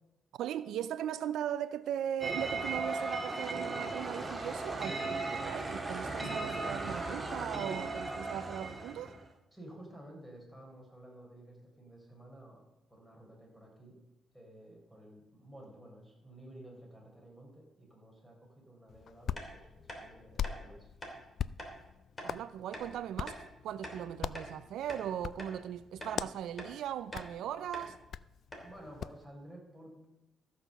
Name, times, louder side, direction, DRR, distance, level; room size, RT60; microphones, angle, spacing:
voice 1, 0.3-9.1 22.2-28.0, right 10 dB, 80° right, 0.4 m, -38 dB
sound 1, 2.2-9.3, right 3 dB, 15° right, 1.9 m, -37 dB
voice 2, 9.5-12.6 12.9-14.0 14.3-20.9 28.6-30.1, right 1 dB, 5° left, 4.4 m, -53 dB
Hands, 18.9-29.2, left 8 dB, 60° left, 0.3 m, -43 dB
sound 2, 19.4-19.5 19.9-20.0 20.4-20.6 21.0-21.2 21.6-21.7 22.2-22.3 22.7-22.9 23.3-23.4 23.8-24.6 24.9-25.1 25.4-25.5 26.0-26.2 26.6-26.7 27.1-27.3 27.7-27.9 28.2-28.3 28.5-28.7, equal, 25° left, 2.9 m, -44 dB
14.0 x 6.4 x 6.6 m
cardioid pair, 90°, 0 cm